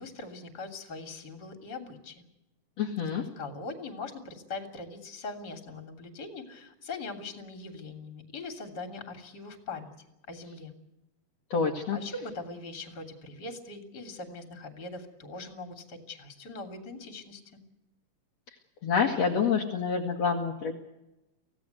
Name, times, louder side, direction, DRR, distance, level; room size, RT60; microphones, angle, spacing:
voice 1, 0.0-2.2 3.1-9.9 10.3-10.7 11.9-17.6, left 3 dB, 30° left, 6 dB, 3.3 m, -41 dB
voice 2, 2.8-3.3 11.5-12.0 18.8-20.7, left 6 dB, 55° left, 0 dB, 2.7 m, -27 dB
25.5 x 17.0 x 8.1 m, 0.93 s
omnidirectional pair, 3.8 m